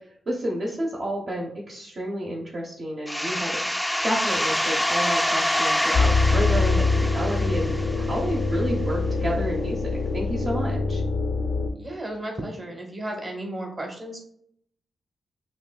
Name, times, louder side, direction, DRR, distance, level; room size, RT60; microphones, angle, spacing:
voice 1, 0.3-3.6 4.0-9.8 10.1-11.0, right 1 dB, 55° right, -3 dB, 0.8 m, -30 dB
sound 1, 3.1-8.6, equal, 5° left, 0.3 m, -26 dB
sound 2, 5.9-11.7, left 3 dB, 80° left, 0.4 m, -24 dB
voice 2, 11.8-14.2, right 1 dB, 35° right, 2 dB, 1.1 m, -34 dB
5.8 x 2.5 x 2.2 m, 0.69 s
cardioid pair, 55°, 0 cm